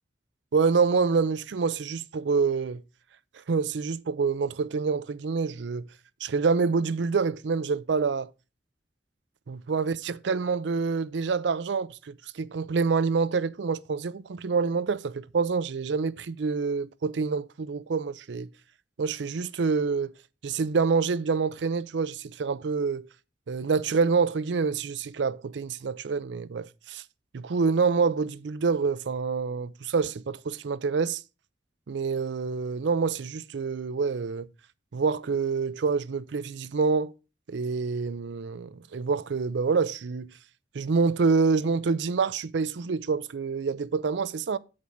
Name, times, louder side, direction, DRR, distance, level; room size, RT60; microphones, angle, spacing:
voice 1, 0.5-2.8 3.5-5.9 6.2-8.3 9.5-18.5 19.0-20.1 20.4-23.1 23.5-27.0 27.3-31.2 31.9-34.5 34.9-37.1 37.5-40.3 40.7-44.6, right 5 dB, 75° right, 0.5 m, -27 dB
7.9 x 5.4 x 4.9 m
head